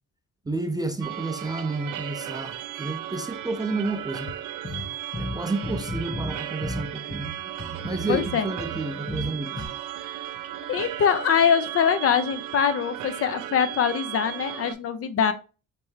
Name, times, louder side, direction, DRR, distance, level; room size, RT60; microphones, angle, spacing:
voice 1, 0.5-4.3 5.2-7.3 7.8-9.7, right 3 dB, 15° right, 0.4 m, -30 dB
sound 1, 1.0-14.7, right 12 dB, 80° right, 0.5 m, -36 dB
sound 2, 4.6-9.7, left 1 dB, 30° left, 1.4 m, -34 dB
voice 2, 8.1-8.5 10.7-15.3, left 7 dB, 50° left, 0.5 m, -23 dB
3.3 x 3.2 x 3.2 m
cardioid pair, 90°, 30 cm